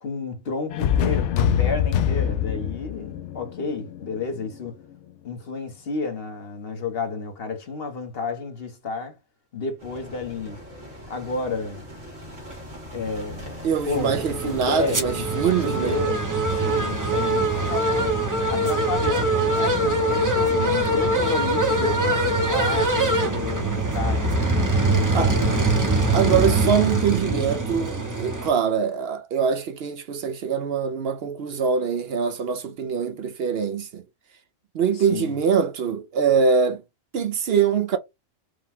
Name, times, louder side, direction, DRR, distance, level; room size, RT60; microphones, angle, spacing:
voice 1, 0.0-4.8 5.2-9.2 9.5-10.6 11.1-11.9 12.9-13.6 13.9-18.1 18.5-25.7 34.9-35.3, left 4 dB, 55° left, 1.2 m, -31 dB
sound 1, 0.7-4.6, left 9 dB, 75° left, 0.9 m, -24 dB
sound 2, 9.8-26.6, equal, 85° right, 2.0 m, -41 dB
voice 2, 13.6-16.0 25.1-25.3 26.1-34.0 34.7-36.8 37.1-38.0, right 6 dB, 65° right, 0.7 m, -23 dB
sound 3, 13.9-28.5, right 2 dB, 20° right, 0.7 m, -23 dB
5.0 x 2.2 x 3.5 m
omnidirectional pair, 1.2 m